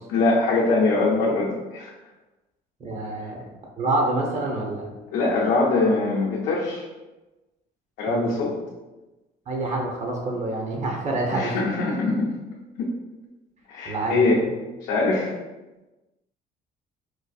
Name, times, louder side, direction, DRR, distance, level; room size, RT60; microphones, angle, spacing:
voice 1, 0.1-1.9 5.1-6.9 8.0-8.5 11.3-12.3 12.8-12.9 13.7-14.4 14.8-15.3, left 3 dB, 80° left, -5 dB, 0.6 m, -22 dB
voice 2, 2.8-3.4 3.8-4.9 8.1-8.2 9.5-11.6 13.8-14.5, right 2 dB, 40° right, 0 dB, 0.9 m, -27 dB
4.4 x 2.5 x 2.3 m, 1.1 s
cardioid pair, 110°, 17 cm